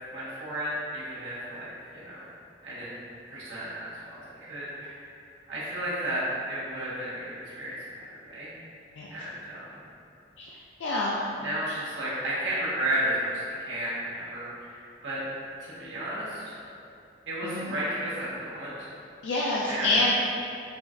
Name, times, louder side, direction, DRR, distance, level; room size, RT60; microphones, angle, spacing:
voice 1, 0.1-2.2 2.6-3.0 3.3-5.0 5.5-8.6 9.1-9.7 11.4-15.2 15.6-16.5 17.3-18.9 19.7-19.9, right 1 dB, 85° right, -9 dB, 1.1 m, -33 dB
voice 2, 10.8-11.2 17.4-17.7 19.2-20.1, left 2 dB, 75° left, -5 dB, 0.3 m, -27 dB
4.8 x 2.4 x 2.6 m, 2.6 s
head